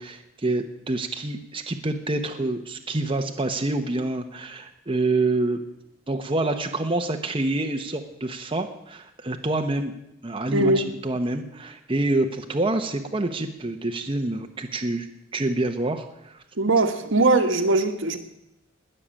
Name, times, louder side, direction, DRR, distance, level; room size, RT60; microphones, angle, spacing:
voice 1, 0.0-5.6 6.1-9.9 10.2-15.1 15.3-16.4, right 2 dB, 25° right, 4 dB, 1.0 m, -27 dB
voice 2, 10.5-10.8 16.6-18.2, right 2 dB, 70° right, 6 dB, 1.5 m, -20 dB
20.0 x 6.8 x 8.9 m, 0.84 s
head